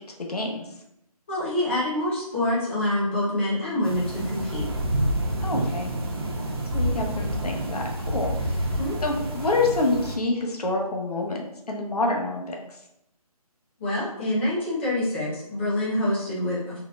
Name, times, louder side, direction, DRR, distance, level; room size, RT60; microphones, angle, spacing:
voice 1, 0.3-0.7 5.4-5.9 6.7-11.4 11.7-12.6, left 2 dB, 75° left, 1 dB, 0.9 m, -27 dB
voice 2, 1.3-4.7 8.8-9.0 13.8-16.8, left 1 dB, 20° left, -7 dB, 0.8 m, -26 dB
sound 1, 3.8-10.1, right 1 dB, 40° right, 0.6 m, -28 dB
3.8 x 3.1 x 2.4 m, 0.80 s
figure-of-eight pair, 165°, 20 cm